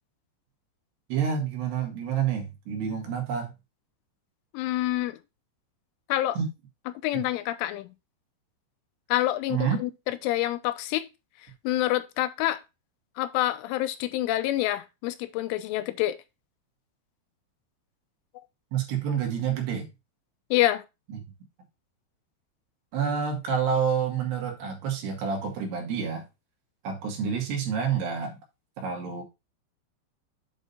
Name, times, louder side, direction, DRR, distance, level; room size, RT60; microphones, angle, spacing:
voice 1, 1.1-3.5 6.4-6.5 7.1-7.2 9.5-9.8 18.7-19.9 21.1-21.2 22.9-26.2 26.8-28.4 28.8-29.2, right 7 dB, 65° right, 3.6 m, -28 dB
voice 2, 4.5-5.2 6.1-6.4 7.0-7.9 9.1-11.1 11.6-12.6 13.2-16.2 20.5-20.8, left 15 dB, 85° left, 3.2 m, -27 dB
8.2 x 3.8 x 5.4 m
omnidirectional pair, 5.5 m